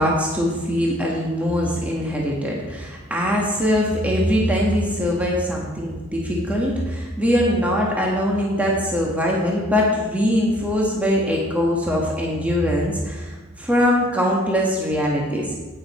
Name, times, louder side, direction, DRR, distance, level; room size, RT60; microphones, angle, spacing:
voice 1, 0.0-15.5, equal, 5° right, -3 dB, 1.4 m, -22 dB
9.9 x 9.2 x 4.2 m, 1.2 s
head